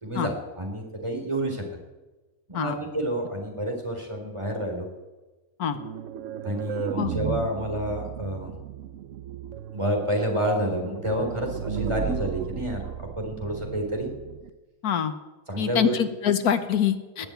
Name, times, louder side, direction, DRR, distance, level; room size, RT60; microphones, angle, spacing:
voice 1, 0.0-1.6 2.5-4.9 6.4-8.5 9.7-14.1 15.5-16.0, equal, 20° right, 2 dB, 3.7 m, -29 dB
sound 1, 5.7-14.5, right 8 dB, 60° right, 1.1 m, -35 dB
voice 2, 14.8-15.1 15.6-17.3, left 8 dB, 85° left, 11 dB, 1.6 m, -25 dB
20.5 x 7.0 x 9.1 m, 1.2 s
omnidirectional pair, 1.6 m